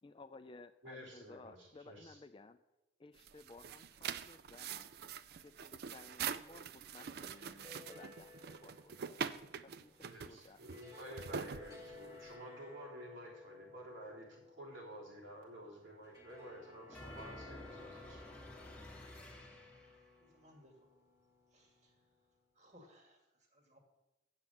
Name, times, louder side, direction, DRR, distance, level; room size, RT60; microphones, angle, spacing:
voice 1, 0.0-2.6 3.0-4.9 5.4-9.2 9.6-10.6, left 3 dB, 25° left, 10 dB, 0.4 m, -57 dB
voice 2, 0.8-2.2 10.0-18.2, right 1 dB, 85° right, -4 dB, 3.4 m, -52 dB
sound 1, 3.1-12.3, right 7 dB, 55° right, 0.4 m, -44 dB
sound 2, 7.3-22.4, left 3 dB, 20° right, 1.5 m, -58 dB
sound 3, 16.9-20.1, left 1 dB, 10° left, 1.4 m, -51 dB
voice 3, 19.8-20.7 21.5-21.9 22.6-23.2 23.5-23.8, equal, 35° right, 1 dB, 1.8 m, -63 dB
7.5 x 7.2 x 7.8 m, 0.98 s
head